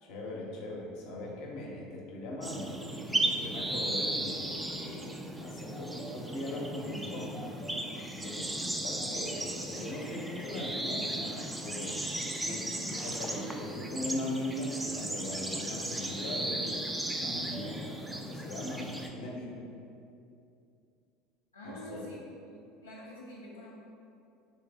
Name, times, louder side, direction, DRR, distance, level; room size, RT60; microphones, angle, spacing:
voice 1, 0.0-5.1 5.4-7.5 8.1-12.0 12.4-12.6 13.0-19.6 21.6-22.1, left 1 dB, 55° left, -2 dB, 0.7 m, -40 dB
sound 1, 2.4-19.1, right 1 dB, 10° right, 0.3 m, -36 dB
voice 2, 21.5-22.2 22.4-23.7, equal, 85° left, -7 dB, 0.4 m, -46 dB
3.3 x 3.1 x 3.4 m, 2.5 s
figure-of-eight pair, 70°, 0 cm